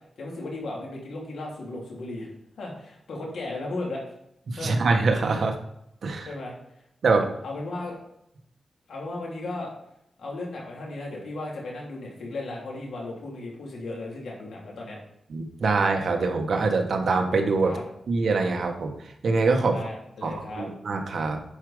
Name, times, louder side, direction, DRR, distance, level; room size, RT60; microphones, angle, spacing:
voice 1, 0.2-2.3 2.6-4.0 4.6-4.8 6.2-6.6 7.1-8.0 8.9-9.7 10.2-15.0 17.6-17.8 19.7-20.7, left 2 dB, 85° left, -2 dB, 3.0 m, -35 dB
voice 2, 4.5-5.6 6.0-6.3 7.0-7.3 15.3-17.8 18.1-19.8 20.2-21.4, right 3 dB, 65° right, 3 dB, 1.4 m, -24 dB
10.5 x 4.9 x 5.0 m, 0.77 s
wide cardioid pair, 95°, 0 cm